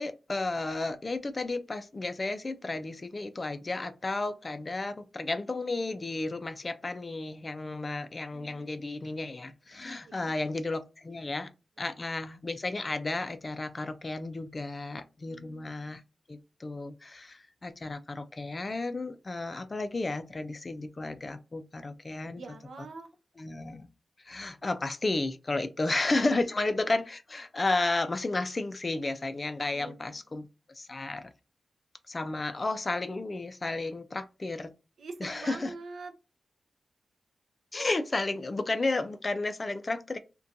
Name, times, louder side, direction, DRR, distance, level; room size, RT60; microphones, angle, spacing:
voice 1, 0.0-11.5 11.8-16.0 16.3-22.4 23.4-23.9 24.2-30.4 30.8-31.3 32.1-34.7 35.2-35.7 37.7-40.2, left 2 dB, 30° left, 0.3 m, -33 dB
voice 2, 8.3-8.9 10.0-10.5 15.3-16.0 22.4-23.1 29.7-30.2 35.0-36.1, right 3 dB, 75° right, 0.4 m, -45 dB
2.5 x 2.2 x 2.6 m
wide cardioid pair, 135°, 0 cm